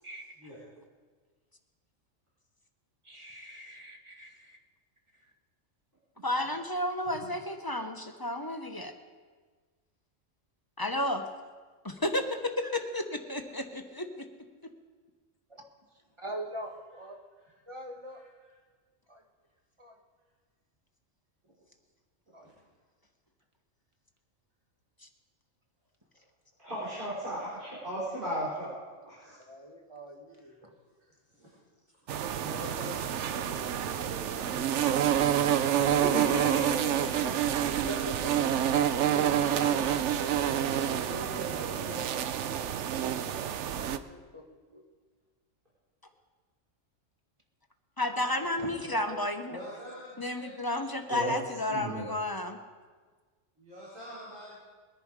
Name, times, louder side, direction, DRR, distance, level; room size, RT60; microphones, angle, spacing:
voice 1, 3.0-4.6 15.5-15.6 16.2-17.1 17.7-18.2 19.1-19.2 19.8-19.9 22.3-22.5 29.5-30.7 37.4-39.2 43.2-43.3 43.6-44.8 48.6-49.2, right 1 dB, 25° right, 1 dB, 1.6 m, -44 dB
voice 2, 6.2-8.9 10.8-11.2 11.8-14.2 48.0-49.6 50.2-52.6, left 1 dB, 20° left, 5 dB, 1.0 m, -32 dB
voice 3, 18.1-18.5 22.4-22.5 30.3-31.6 32.4-35.3 39.1-39.9 40.8-42.3 49.5-50.9 53.6-54.6, equal, 90° right, -9 dB, 5.0 m, -45 dB
voice 4, 26.6-29.4 36.0-37.3 51.1-51.3 51.7-52.0, right 1 dB, 40° right, -9 dB, 4.6 m, -35 dB
sound 1, 32.1-44.0, right 10 dB, 70° right, 0.9 m, -28 dB
21.5 x 10.5 x 4.8 m, 1.5 s
omnidirectional pair, 1.3 m